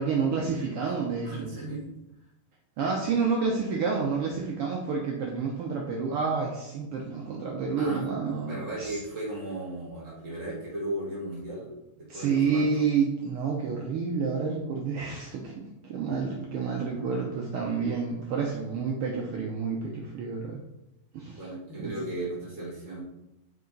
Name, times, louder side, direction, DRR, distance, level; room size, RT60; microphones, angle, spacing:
voice 1, 0.0-1.5 2.8-9.0 12.1-20.6 21.1-21.4 21.8-21.9, right 5 dB, 90° right, -1 dB, 1.2 m, -29 dB
voice 2, 1.2-1.8 7.8-8.0 8.4-12.8 21.4-23.0, right 1 dB, 45° right, -5 dB, 1.9 m, -36 dB
5.5 x 4.9 x 3.9 m, 0.90 s
omnidirectional pair, 3.5 m